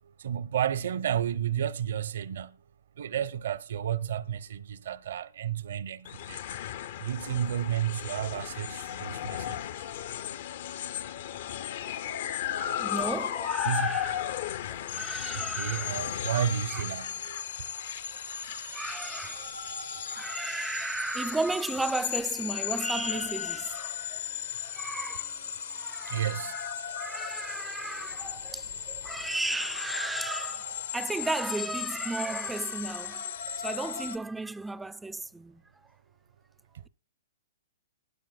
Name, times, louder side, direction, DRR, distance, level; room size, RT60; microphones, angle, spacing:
voice 1, 0.2-2.5 3.0-6.4 7.0-9.6 13.6-14.0 15.3-17.4 26.1-26.5, right 9 dB, 70° right, 0.7 m, -31 dB
sound 1, 6.1-22.5, left 11 dB, 60° left, 0.5 m, -36 dB
voice 2, 12.6-14.2 14.7-16.0 16.4-16.8 18.7-19.5 20.0-24.2 24.6-25.3 25.7-35.6, right 3 dB, 5° right, 0.4 m, -35 dB
sound 2, 14.9-34.2, left 8 dB, 75° left, 1.0 m, -37 dB
20.0 x 9.4 x 2.3 m
hypercardioid pair, 135°, 0 cm